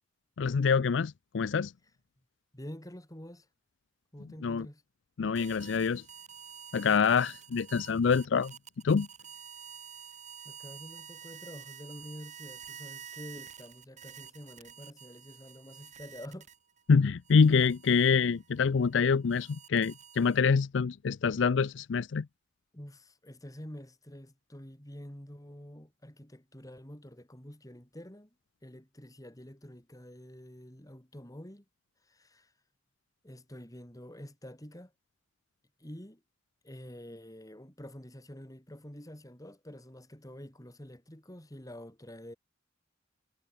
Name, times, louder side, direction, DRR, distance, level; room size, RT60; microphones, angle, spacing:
voice 1, 0.4-1.7 4.4-4.7 5.2-6.0 6.7-8.5 8.8-9.1 16.9-22.3, left 5 dB, 80° left, 0.5 m, -26 dB
voice 2, 2.5-3.5 4.1-4.8 10.4-16.5 22.7-28.3 28.6-31.6 32.0-32.5 33.2-34.9 35.8-36.2 36.6-42.4, equal, 20° left, 3.4 m, -47 dB
sound 1, 5.3-16.8 17.2-20.6, right 8 dB, 40° right, 1.7 m, -49 dB
head